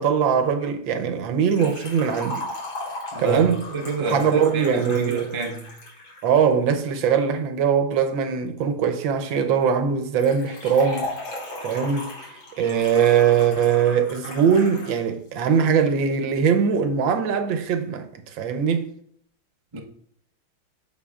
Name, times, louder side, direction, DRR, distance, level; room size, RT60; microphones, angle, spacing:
voice 1, 0.0-2.4 3.2-3.6 4.0-5.3 6.2-11.1 11.6-12.1 12.6-18.9, right 7 dB, 70° right, 1.4 m, -21 dB
Liquid, 1.5-6.5 10.2-15.0 15.3-15.4 16.3-16.4, left 1 dB, 65° left, 3.0 m, -36 dB
voice 2, 3.1-5.6 19.7-19.8, right 2 dB, 50° right, 0.3 m, -29 dB
14.0 x 4.7 x 2.4 m
omnidirectional pair, 2.3 m